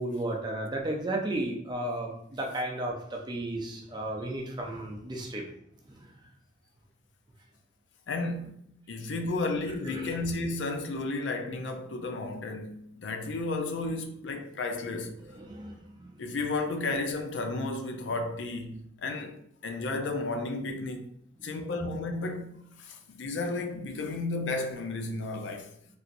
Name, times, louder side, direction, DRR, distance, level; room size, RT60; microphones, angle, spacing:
voice 1, 0.0-5.5 5.9-6.1 9.8-10.1 15.2-16.2 21.4-21.8, right 1 dB, 25° right, 0.5 m, -34 dB
voice 2, 8.1-15.2 16.2-19.4 19.6-21.2 21.4-25.7, left 2 dB, 85° left, 0.4 m, -33 dB
3.3 x 2.9 x 2.5 m
head